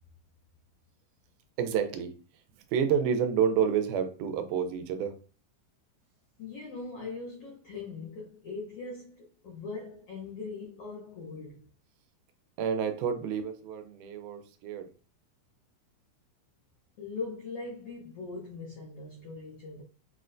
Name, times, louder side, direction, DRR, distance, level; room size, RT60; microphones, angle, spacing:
voice 1, 1.6-2.1 2.7-5.1 12.6-14.9, right 7 dB, 85° right, 2.1 m, -29 dB
voice 2, 6.4-11.7 17.0-19.8, left 4 dB, 85° left, 1.3 m, -40 dB
6.1 x 2.1 x 2.5 m
omnidirectional pair, 3.6 m